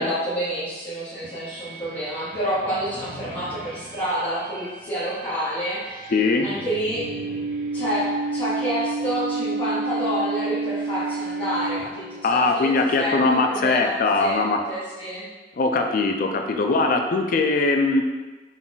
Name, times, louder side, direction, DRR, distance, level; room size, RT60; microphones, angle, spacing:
voice 1, 0.0-6.1 6.4-7.0 7.7-8.0 8.3-14.4 14.7-15.3, equal, 30° left, -15 dB, 1.1 m, -28 dB
sound 1, 1.2-12.3, right 3 dB, 50° right, 0.5 m, -31 dB
voice 2, 6.1-6.5 12.2-14.6 15.6-18.0, left 3 dB, 50° left, 4 dB, 0.3 m, -21 dB
3.8 x 2.3 x 3.8 m, 1.3 s
head